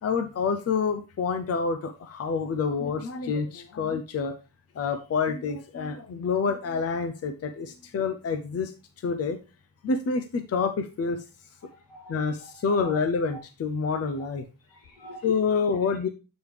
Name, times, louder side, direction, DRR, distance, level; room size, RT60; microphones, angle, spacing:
voice 1, 0.0-4.4 4.7-8.7 9.0-9.4 9.8-11.2 12.1-14.4 15.2-16.1, left 5 dB, 45° left, 8 dB, 0.6 m, -27 dB
voice 2, 11.6-12.1 12.4-13.0 13.3-13.4 14.7-15.3, right 2 dB, 85° left, -2 dB, 3.4 m, -46 dB
8.2 x 4.9 x 3.3 m, 0.31 s
wide cardioid pair, 160°, 34 cm